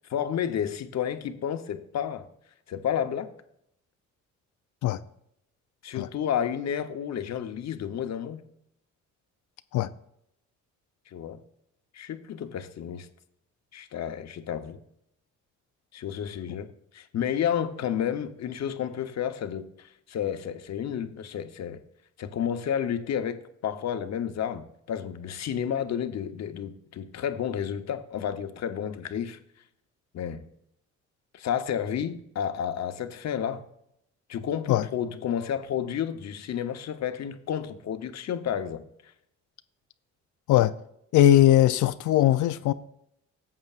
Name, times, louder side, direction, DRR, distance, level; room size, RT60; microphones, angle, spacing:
voice 1, 0.1-2.2 2.7-3.3 5.8-8.4 11.1-11.4 11.9-13.1 13.7-14.8 15.9-21.8 22.2-29.4 30.1-30.5 31.3-33.7 34.3-38.8, left 9 dB, 60° left, 0.9 m, -31 dB
voice 2, 41.1-42.7, left 13 dB, 80° left, 0.5 m, -20 dB
13.0 x 7.8 x 2.4 m
cardioid pair, 90°, 30 cm